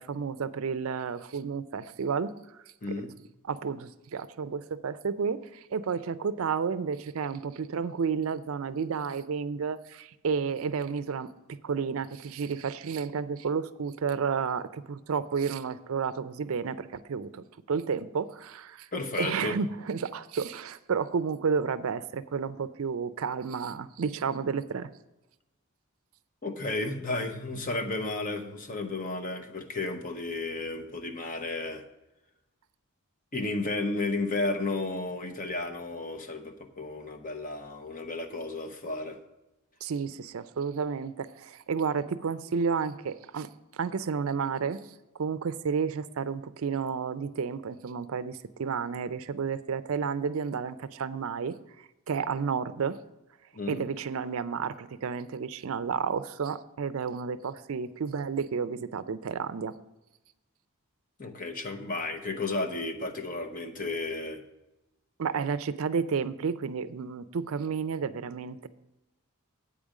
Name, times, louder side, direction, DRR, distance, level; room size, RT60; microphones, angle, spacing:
voice 1, 0.0-2.3 3.5-11.3 11.6-18.9 19.2-24.9 39.8-44.8 45.2-51.5 52.1-53.0 53.7-59.7 65.2-68.7, right 6 dB, 65° right, 13 dB, 0.4 m, -31 dB
voice 2, 18.9-19.6 26.4-31.8 33.3-39.2 53.5-53.9 61.2-64.4, left 2 dB, 35° left, 5 dB, 0.9 m, -33 dB
8.7 x 5.1 x 7.3 m, 0.96 s
head